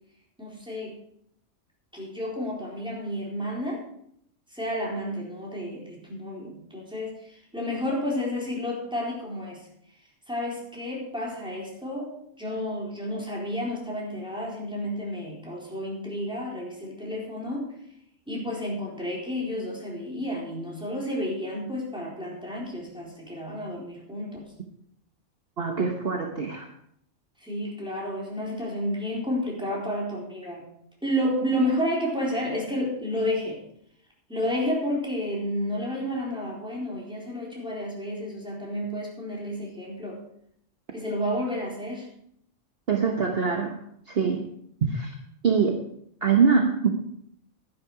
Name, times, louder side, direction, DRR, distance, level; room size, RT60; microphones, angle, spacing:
voice 1, 0.4-1.0 1.9-3.8 4.5-9.6 10.3-17.7 18.3-24.4 27.4-30.6 31.0-33.6 34.3-40.2 40.9-42.1, equal, 5° right, -4 dB, 4.1 m, -31 dB
voice 2, 25.6-26.7 42.9-43.8 44.1-44.4 44.8-45.1 45.4-45.8 46.2-46.9, right 5 dB, 50° right, 2 dB, 1.3 m, -23 dB
11.5 x 11.0 x 4.9 m, 0.70 s
omnidirectional pair, 1.3 m